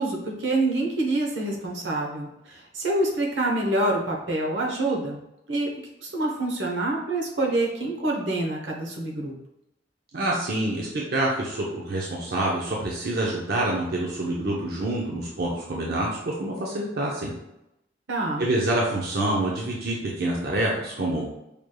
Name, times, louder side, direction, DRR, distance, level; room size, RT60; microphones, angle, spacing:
voice 1, 0.0-5.2 5.5-5.8 6.0-9.3 18.1-18.4, right 2 dB, 85° right, -1 dB, 0.9 m, -26 dB
voice 2, 10.1-17.3 18.4-21.3, right 1 dB, 60° right, -3 dB, 0.7 m, -27 dB
4.9 x 3.2 x 2.2 m, 0.86 s
head